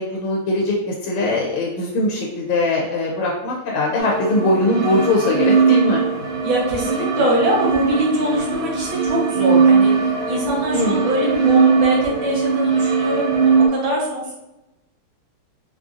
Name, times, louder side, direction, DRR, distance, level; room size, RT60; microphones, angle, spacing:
voice 1, 0.0-6.0 10.7-11.0, left 2 dB, 90° left, -2 dB, 1.6 m, -21 dB
sound 1, 4.0-13.7, right 5 dB, 85° right, 1.7 m, -19 dB
voice 2, 6.4-9.9 10.3-14.3, right 1 dB, 70° right, -3 dB, 1.7 m, -22 dB
4.2 x 2.5 x 2.4 m, 0.95 s
omnidirectional pair, 2.4 m